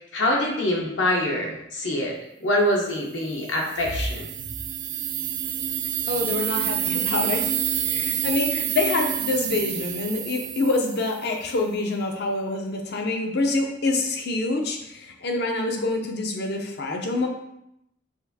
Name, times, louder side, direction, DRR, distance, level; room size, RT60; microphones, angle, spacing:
voice 1, 0.1-4.3, left 1 dB, 75° left, -1 dB, 1.0 m, -24 dB
sound 1, 3.4-11.3, right 10 dB, 40° right, 0.3 m, -28 dB
voice 2, 6.1-17.3, left 2 dB, 60° left, 3 dB, 0.6 m, -26 dB
6.0 x 2.6 x 2.7 m, 0.80 s
head